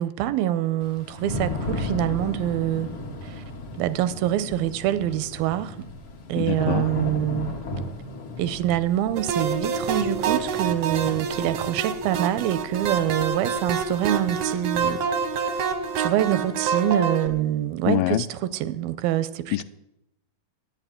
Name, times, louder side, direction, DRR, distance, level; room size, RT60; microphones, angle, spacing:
voice 1, 0.0-2.9 3.2-3.4 3.8-5.9 6.3-7.5 8.4-15.0 16.0-19.6, right 12 dB, 85° right, 2.4 m, -25 dB
Thunder / Rain, 0.8-16.6, left 2 dB, 45° left, 1.9 m, -36 dB
voice 2, 6.4-6.9 17.9-18.2 19.5-19.6, left 16 dB, 80° left, 2.3 m, -24 dB
sound 1, 9.2-17.3, right 6 dB, 70° right, 1.6 m, -27 dB
11.0 x 9.1 x 9.1 m
omnidirectional pair, 4.3 m